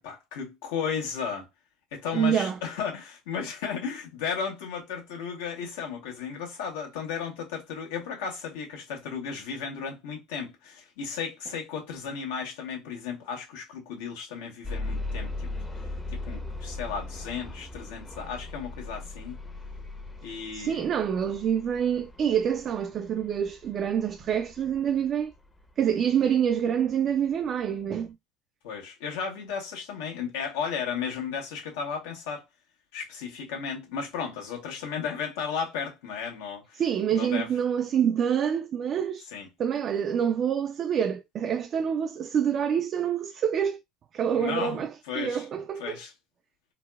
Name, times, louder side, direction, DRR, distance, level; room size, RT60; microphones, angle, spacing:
voice 1, 0.0-1.5 1.9-15.5 16.1-19.4 20.2-20.8 28.6-32.4 32.9-36.8 37.1-37.5 39.3-39.5 44.3-44.8 45.1-45.4 45.8-46.1, left 6 dB, 90° left, 1.1 m, -34 dB
voice 2, 2.1-2.6 20.5-25.3 25.8-28.2 36.8-39.3 39.6-43.8 44.1-44.9 45.2-46.0, right 8 dB, 50° right, 0.3 m, -26 dB
sound 1, 14.6-26.5 27.3-27.4 27.8-27.9, left 2 dB, 15° left, 0.6 m, -39 dB
3.9 x 2.0 x 2.2 m
supercardioid pair, 90°, 0 cm